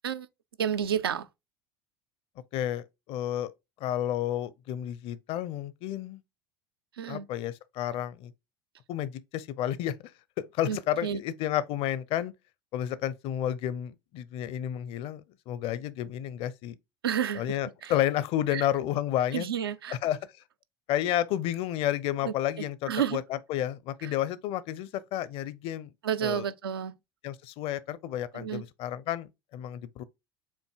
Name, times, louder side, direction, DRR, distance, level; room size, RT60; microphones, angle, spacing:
voice 1, 0.6-1.3 7.0-7.3 10.7-11.2 17.0-17.6 17.8-17.9 18.5-18.7 19.3-20.0 22.2-22.3 22.9-23.2 26.0-26.9 28.3-28.6, right 9 dB, 80° right, 0.5 m, -30 dB
voice 2, 2.5-3.5 3.8-6.2 7.1-8.3 8.9-9.9 10.4-12.3 12.7-16.8 17.3-19.5 19.9-20.2 20.9-25.9 26.2-26.5 27.2-30.0, left 12 dB, 50° left, 0.6 m, -31 dB
7.2 x 2.7 x 2.3 m
figure-of-eight pair, 75°, 12 cm